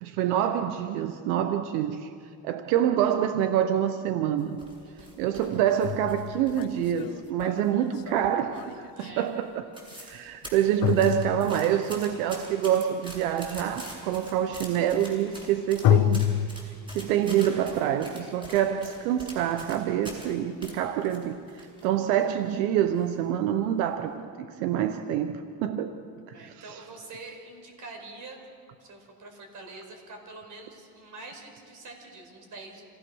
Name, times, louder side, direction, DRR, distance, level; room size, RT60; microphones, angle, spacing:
voice 1, 0.0-2.1 2.4-4.6 5.2-9.7 10.0-16.2 16.9-25.3 25.6-25.9 26.4-26.8, right 10 dB, 90° right, 9 dB, 1.0 m, -26 dB
sound 1, 4.4-4.5 5.4-9.1 10.8-11.9 15.8-16.5, left 13 dB, 55° left, 0.7 m, -27 dB
sound 2, 4.4-7.1 7.4-8.2 8.5-8.9 9.2-9.3 9.5-10.2 10.4-20.3 20.6-21.9 22.2-22.3 22.9-23.3 23.7-23.9, equal, 10° right, 7.9 m, -44 dB
voice 2, 4.8-5.2 7.7-7.9 8.9-9.3 17.7-18.0 26.3-32.8, right 3 dB, 45° right, 3 dB, 5.5 m, -45 dB
27.5 x 17.5 x 6.3 m, 2.3 s
supercardioid pair, 105°, 42 cm